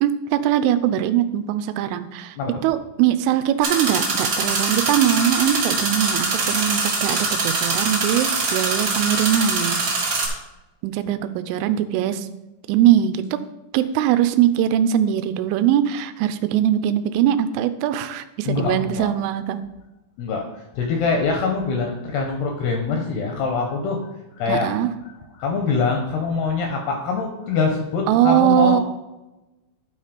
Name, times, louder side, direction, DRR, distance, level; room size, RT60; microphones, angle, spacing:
voice 1, 0.0-2.4 2.6-9.8 10.8-12.3 12.7-13.4 13.7-19.6 24.5-24.9 28.1-28.8, right 11 dB, 85° right, 11 dB, 3.0 m, -21 dB
sound 1, 3.6-10.3, right 3 dB, 60° right, 1.5 m, -23 dB
voice 2, 18.4-19.1 20.2-24.0 24.4-24.8 25.4-28.8, left 4 dB, 75° left, 2 dB, 2.4 m, -24 dB
12.0 x 4.0 x 5.1 m, 1.0 s
omnidirectional pair, 5.6 m